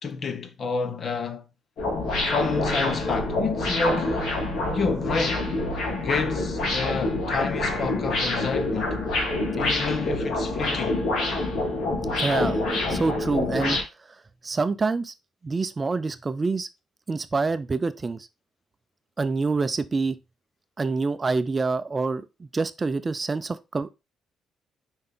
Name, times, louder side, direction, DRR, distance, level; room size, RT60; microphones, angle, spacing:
voice 1, 0.0-1.4 2.3-4.3 4.6-5.5 6.0-9.0 9.5-11.0, left 4 dB, 50° left, 0.9 m, -29 dB
sound 1, 1.8-13.8, left 2 dB, 75° left, 2.6 m, -26 dB
voice 2, 12.2-13.8 14.4-15.1 15.4-16.7 17.1-18.3 19.2-20.2 20.8-23.9, right 4 dB, 30° right, 0.4 m, -26 dB
5.7 x 4.5 x 3.7 m
cardioid pair, 90°, 0 cm